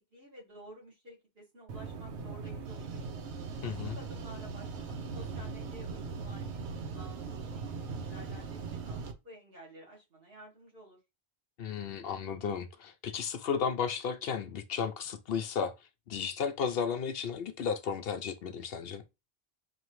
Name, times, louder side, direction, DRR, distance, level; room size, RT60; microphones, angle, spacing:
voice 1, 0.1-3.1 3.9-6.6 6.9-11.0, right 1 dB, 60° right, 2.2 m, -52 dB
sound 1, 1.7-9.1, right 4 dB, 85° right, 1.0 m, -40 dB
voice 2, 3.6-4.0 11.6-19.0, left 6 dB, 65° left, 0.8 m, -34 dB
4.4 x 2.9 x 3.1 m
omnidirectional pair, 1.1 m